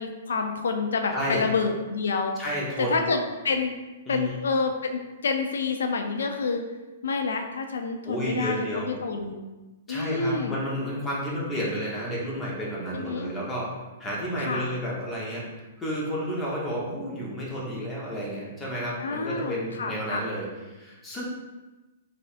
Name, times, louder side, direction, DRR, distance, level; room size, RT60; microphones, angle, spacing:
voice 1, 0.0-2.3 2.8-3.7 4.1-6.6 7.0-9.4 9.9-10.6 12.9-13.3 14.4-14.7 19.0-20.2, left 4 dB, 80° left, 5 dB, 0.3 m, -28 dB
voice 2, 1.1-1.4 2.4-3.0 4.1-4.4 8.0-8.9 9.9-13.7 14.0-15.4 15.8-21.2, equal, 15° left, -5 dB, 0.9 m, -31 dB
4.1 x 2.5 x 2.4 m, 1.1 s
hypercardioid pair, 135°, 0 cm